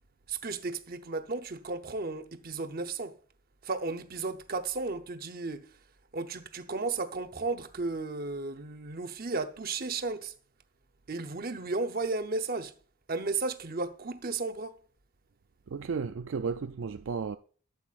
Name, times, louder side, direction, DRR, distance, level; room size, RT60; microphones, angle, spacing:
voice 1, 0.3-3.2 3.6-5.8 6.1-10.3 11.1-12.7 13.1-14.8, right 3 dB, 45° right, 0.8 m, -34 dB
voice 2, 15.7-17.4, right 5 dB, 65° right, 0.4 m, -33 dB
12.5 x 8.0 x 2.5 m
head